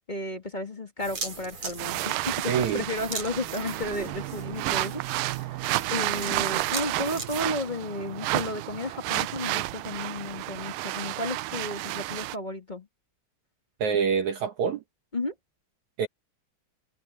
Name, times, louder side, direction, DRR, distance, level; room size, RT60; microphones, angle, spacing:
voice 1, 0.1-5.0 5.3-12.9 15.1-15.3, left 2 dB, 25° left, 1.0 m, -33 dB
sound 1, 1.0-7.4, right 4 dB, 40° right, 5.7 m, -40 dB
sound 2, 1.8-12.4, right 18 dB, 85° right, 2.0 m, -31 dB
voice 2, 2.5-2.8 13.8-14.8 16.0-16.1, right 7 dB, 65° right, 2.0 m, -26 dB
omnidirectional pair, 4.8 m